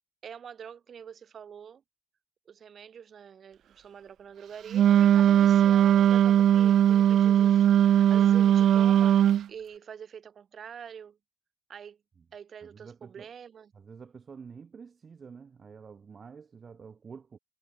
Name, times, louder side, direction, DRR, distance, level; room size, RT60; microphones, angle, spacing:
voice 1, 0.2-1.8 2.4-9.2 9.5-11.2 11.7-12.0 12.3-13.7, right 7 dB, 65° right, 3.2 m, -45 dB
Wind instrument woodwind instrument, 4.7-9.5, right 10 dB, 90° right, 0.4 m, -20 dB
voice 2, 12.6-13.3 13.7-17.4, right 6 dB, 50° right, 5.9 m, -48 dB
cardioid pair, 110°, 0 cm